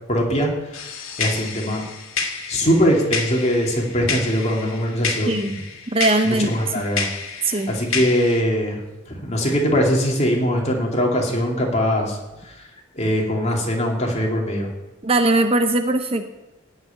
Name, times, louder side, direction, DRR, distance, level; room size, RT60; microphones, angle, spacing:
voice 1, 0.1-1.8 2.5-5.6 6.2-7.1 7.4-8.8 9.1-12.6 12.9-14.7, equal, 30° left, -1 dB, 2.8 m, -22 dB
sound 1, 0.7-8.4, left 5 dB, 75° left, 2.1 m, -30 dB
voice 2, 5.9-6.5 7.4-7.7 15.0-16.3, right 2 dB, 25° right, 7 dB, 0.7 m, -20 dB
16.5 x 5.8 x 9.8 m, 1.1 s
head